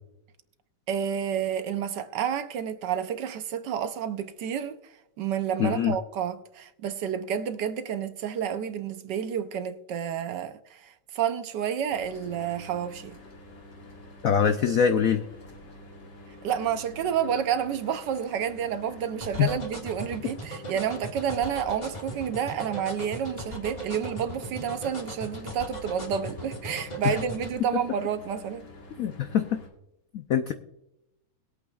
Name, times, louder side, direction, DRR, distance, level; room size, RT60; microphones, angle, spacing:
voice 1, 0.9-4.8 5.2-13.2 16.4-28.7, right 8 dB, 70° right, 1.2 m, -30 dB
voice 2, 5.6-5.9 14.2-15.2 19.4-19.5 27.0-27.1 29.0-29.5 30.3-30.5, left 8 dB, 90° left, 0.7 m, -23 dB
Mechanical fan, 11.9-29.7, equal, 60° left, 2.8 m, -48 dB
sound 1, 19.2-27.5, right 1 dB, 20° left, 1.7 m, -38 dB
21.0 x 8.4 x 2.3 m
omnidirectional pair, 2.2 m